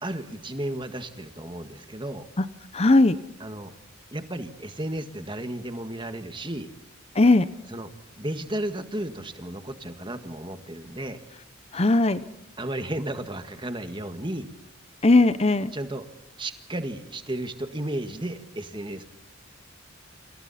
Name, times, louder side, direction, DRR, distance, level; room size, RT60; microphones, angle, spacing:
voice 1, 0.0-2.3 3.4-3.7 4.1-6.7 7.7-7.9 8.2-11.2 12.6-14.5 15.7-16.0 16.4-19.0, right 1 dB, 25° right, 8 dB, 1.7 m, -33 dB
voice 2, 2.7-3.2 7.1-7.5 11.7-12.2 15.0-15.7, left 2 dB, 30° left, 13 dB, 0.8 m, -18 dB
29.5 x 26.5 x 4.3 m, 0.91 s
head